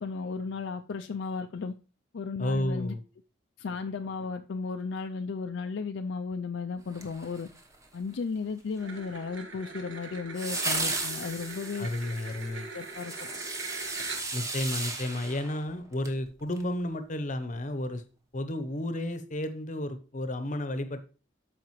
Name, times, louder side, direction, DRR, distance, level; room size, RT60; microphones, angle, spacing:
voice 1, 0.0-1.7 2.1-2.9 3.6-7.5 7.9-11.9 12.7-13.1, left 4 dB, 60° left, 6 dB, 0.4 m, -34 dB
voice 2, 2.4-3.0 11.8-12.7 14.3-18.0 18.3-21.0, left 1 dB, 40° left, 10 dB, 0.8 m, -32 dB
sound 1, 6.9-7.8 10.3-16.2 16.5-16.6, right 2 dB, 15° right, 1.0 m, -35 dB
sound 2, 8.8-14.6, right 3 dB, 65° right, 1.5 m, -42 dB
13.0 x 5.0 x 3.1 m, 0.35 s
head